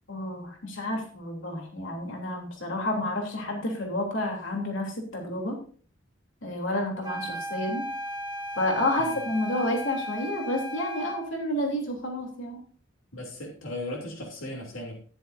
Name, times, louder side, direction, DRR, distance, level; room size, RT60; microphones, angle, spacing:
voice 1, 0.1-5.6 6.4-7.8 8.6-12.6, left 1 dB, 70° left, 1 dB, 3.1 m, -30 dB
sound 1, 7.0-11.3, equal, 20° right, 1.5 m, -35 dB
voice 2, 13.1-15.0, left 1 dB, 90° left, 0 dB, 2.9 m, -37 dB
13.5 x 10.5 x 2.6 m, 0.41 s
head